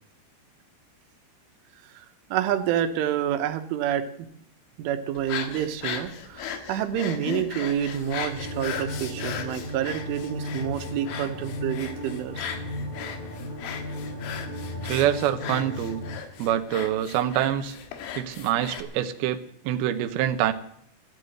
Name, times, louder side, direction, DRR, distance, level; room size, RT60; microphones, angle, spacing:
voice 1, 2.3-4.3 4.8-12.5, right 10 dB, 90° right, 8 dB, 3.7 m, -28 dB
sound 1, 5.2-18.8, left 8 dB, 75° left, 3.8 m, -37 dB
sound 2, 8.2-16.2, left 1 dB, 20° left, 1.7 m, -36 dB
voice 2, 14.8-16.0 16.4-17.8 18.1-20.5, right 11 dB, 75° right, 7 dB, 2.4 m, -25 dB
13.0 x 12.0 x 7.8 m, 0.68 s
omnidirectional pair, 5.5 m